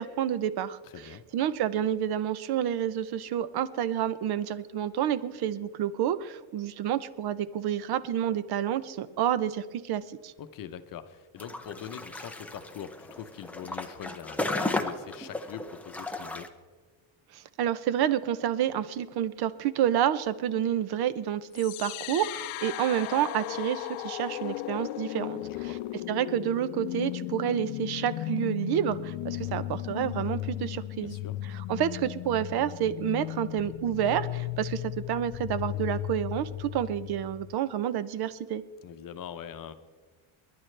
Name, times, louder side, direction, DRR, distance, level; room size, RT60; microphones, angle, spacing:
voice 1, 0.0-10.3 17.3-25.7 26.1-31.2 31.5-38.6, right 10 dB, 50° right, 16 dB, 0.7 m, -29 dB
voice 2, 0.8-1.2 10.4-16.5 25.4-25.8 31.0-31.4 38.8-39.7, left 9 dB, 40° left, 10 dB, 0.8 m, -42 dB
sound 1, 11.4-16.5, left 2 dB, 5° left, 0.3 m, -35 dB
sound 2, 21.5-37.5, left 16 dB, 80° left, 0.6 m, -36 dB
29.5 x 11.0 x 3.3 m, 1.4 s
cardioid pair, 170°, 50 cm